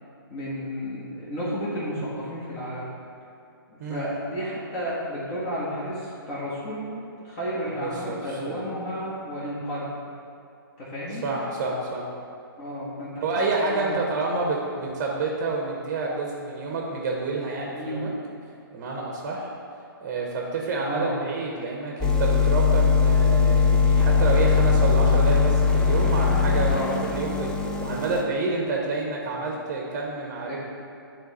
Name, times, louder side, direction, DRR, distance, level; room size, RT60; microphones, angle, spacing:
voice 1, 0.3-2.9 3.7-6.8 7.2-9.9 10.8-11.3 12.6-13.2 13.6-14.0 17.7-18.1 20.9-21.2 26.7-27.0 30.5-30.6, equal, 30° left, -9 dB, 1.5 m, -32 dB
voice 2, 3.8-4.2 7.8-8.6 11.2-12.1 13.2-18.1 18.7-19.5 20.0-30.6, right 3 dB, 35° right, -1 dB, 0.9 m, -28 dB
sound 1, 22.0-28.2, left 5 dB, 5° left, 0.4 m, -20 dB
9.6 x 3.8 x 4.1 m, 2.6 s
figure-of-eight pair, 135°, 12 cm